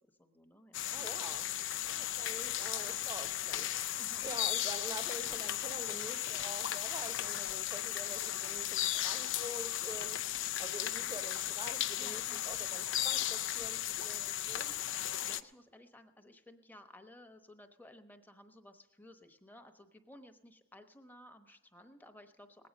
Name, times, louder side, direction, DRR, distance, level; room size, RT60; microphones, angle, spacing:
voice 1, 0.2-0.8 4.0-4.3 12.0-12.4 14.9-22.7, left 1 dB, 10° left, 6 dB, 0.9 m, -56 dB
sound 1, 0.7-15.4, left 13 dB, 65° left, 0.5 m, -36 dB
voice 2, 0.9-1.5 1.9-3.7 4.2-10.2 10.6-14.7, right 1 dB, 20° right, 10 dB, 0.8 m, -46 dB
19.5 x 8.6 x 5.2 m, 1.1 s
head